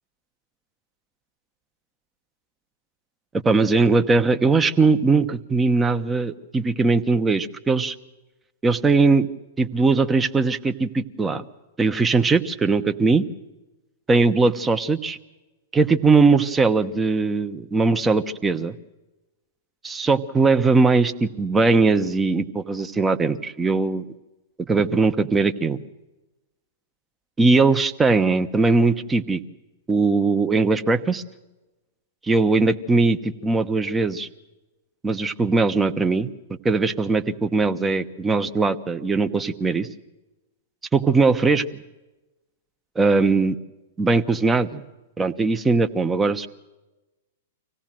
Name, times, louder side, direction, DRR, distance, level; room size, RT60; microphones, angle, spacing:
voice 1, 3.4-8.0 8.6-9.3 9.6-11.4 11.8-13.3 14.1-15.2 15.7-18.8 19.8-24.0 24.7-25.8 27.4-29.4 29.9-31.2 32.2-34.3 35.0-36.3 36.6-39.9 40.9-41.6 42.9-43.6 44.0-44.8 45.2-46.5, right 3 dB, 15° right, 10 dB, 1.1 m, -20 dB
25.5 x 17.5 x 7.6 m, 1.1 s
hypercardioid pair, 110°, 0 cm